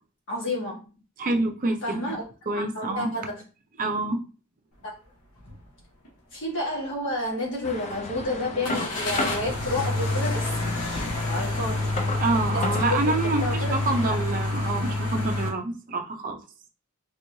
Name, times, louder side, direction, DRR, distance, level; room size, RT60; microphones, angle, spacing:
voice 1, 0.3-0.8 1.8-2.2 2.5-3.4 4.8-4.9 6.3-13.7, left 1 dB, 60° left, -4 dB, 1.6 m, -31 dB
voice 2, 1.2-2.2 2.5-3.1 3.8-4.2 12.2-16.4, right 2 dB, 40° right, 3 dB, 0.5 m, -27 dB
sound 1, 5.4-5.6 6.0-6.1 8.6-15.5, left 2 dB, 85° left, 1.0 m, -28 dB
sound 2, 7.6-14.1, left 2 dB, 30° left, 0.4 m, -34 dB
3.3 x 3.1 x 2.7 m, 0.35 s
head